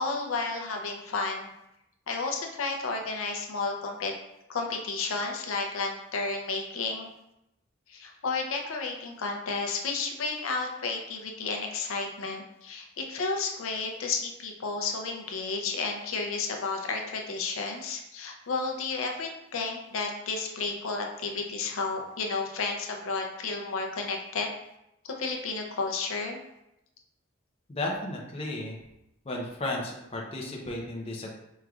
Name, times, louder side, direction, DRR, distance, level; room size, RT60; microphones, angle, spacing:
voice 1, 0.0-1.5 2.1-4.1 4.5-7.1 7.9-24.5 25.0-26.4, left 4 dB, 80° left, 2 dB, 0.6 m, -32 dB
voice 2, 27.7-28.8 29.2-31.4, left 1 dB, 30° left, -2 dB, 0.6 m, -34 dB
4.9 x 3.1 x 2.4 m, 0.86 s
head